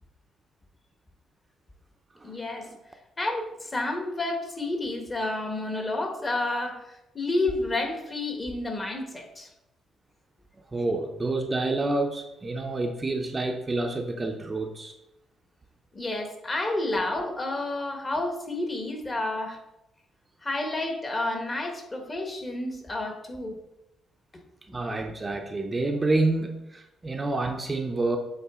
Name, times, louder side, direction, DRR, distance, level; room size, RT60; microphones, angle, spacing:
voice 1, 2.2-2.7 3.2-9.5 15.9-19.6 20.4-23.6 24.7-25.1, left 2 dB, 25° left, 3 dB, 1.4 m, -30 dB
voice 2, 10.7-15.0 24.7-28.2, right 2 dB, 25° right, 4 dB, 0.7 m, -28 dB
8.2 x 3.9 x 3.7 m, 0.89 s
cardioid pair, 90°, 0 cm